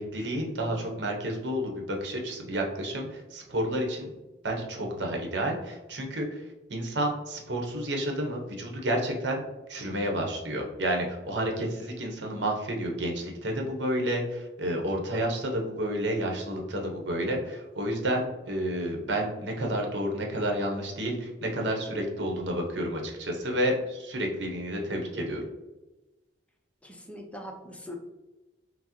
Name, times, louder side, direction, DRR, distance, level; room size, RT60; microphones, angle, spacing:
voice 1, 0.0-4.1 4.4-6.3 6.7-9.4 9.7-25.4, right 1 dB, 70° right, 1 dB, 0.9 m, -30 dB
voice 2, 26.8-28.0, equal, 5° left, 2 dB, 0.5 m, -42 dB
5.9 x 2.0 x 2.9 m, 1.1 s
head